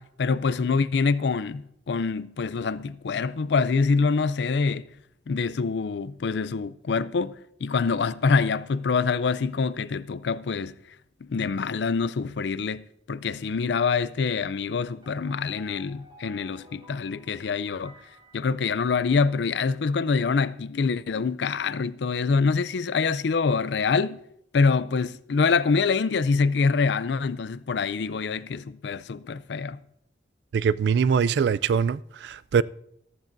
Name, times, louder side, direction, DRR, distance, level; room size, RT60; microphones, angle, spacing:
voice 1, 0.0-4.9 5.3-10.7 11.2-17.9 18.3-24.2 24.5-29.8, left 4 dB, 75° left, 0.4 m, -25 dB
sound 1, 15.0-19.3, left 1 dB, 25° right, 2.1 m, -53 dB
voice 2, 30.5-32.6, right 6 dB, 70° right, 0.3 m, -23 dB
14.5 x 13.5 x 2.6 m
head